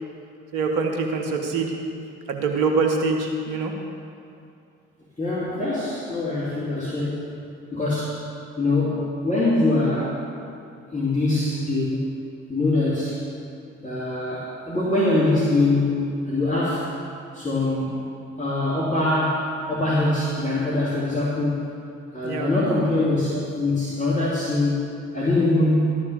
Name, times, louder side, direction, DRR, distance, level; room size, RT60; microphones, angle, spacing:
voice 1, 0.5-1.8 2.3-3.7 22.2-22.5, right 4 dB, 60° right, 3 dB, 1.5 m, -24 dB
voice 2, 5.2-8.2 8.6-10.2 10.9-12.1 12.5-13.2 13.8-16.9 17.3-18.0 18.4-21.8 22.1-26.0, left 2 dB, 20° left, -8 dB, 2.6 m, -23 dB
12.5 x 6.5 x 7.2 m, 2.4 s
figure-of-eight pair, 45°, 35 cm